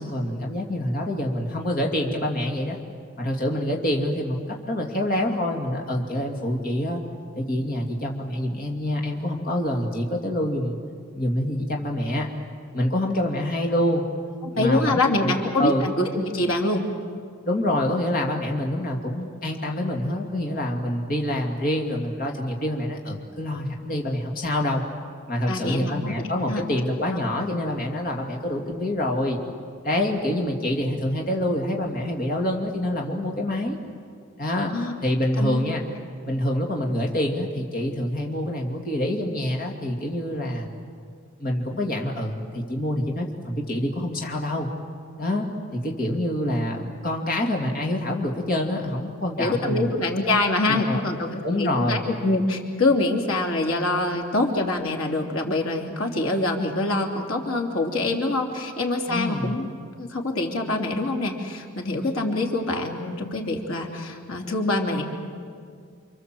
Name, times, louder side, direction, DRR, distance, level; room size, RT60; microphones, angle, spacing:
voice 1, 0.0-2.8 3.2-7.0 7.4-10.8 11.1-12.3 12.7-14.0 14.5-15.8 17.4-24.8 25.3-29.4 29.8-33.8 34.4-34.7 35.0-35.8 36.3-40.7 41.4-44.7 45.2-45.5 45.7-49.9 50.7-51.0 51.4-52.0 59.1-59.5, left 1 dB, 45° left, 0 dB, 2.6 m, -26 dB
voice 2, 14.6-16.8 25.5-26.1 26.4-26.6 34.7-34.9 35.4-35.6 49.4-59.7 60.0-65.0, left 2 dB, 85° left, 1 dB, 3.1 m, -25 dB
29.5 x 26.0 x 7.8 m, 2.2 s
head